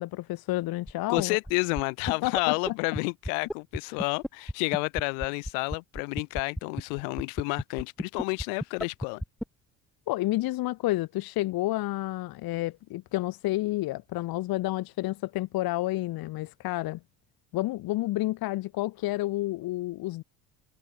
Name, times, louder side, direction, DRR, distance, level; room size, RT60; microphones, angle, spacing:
voice 1, 0.0-1.4 2.1-2.6 10.1-17.0 17.5-20.2, left 17 dB, 65° left, 1.2 m, -30 dB
sound 1, 0.9-1.0 1.2-1.5 1.8-1.9 2.1-2.2 2.4-2.5 2.7-2.8 2.9-3.0 3.2-9.4, equal, ahead, 1.3 m, -31 dB
voice 2, 1.1-9.2, left 40 dB or more, 80° left, 1.6 m, -30 dB
supercardioid pair, 70°, 39 cm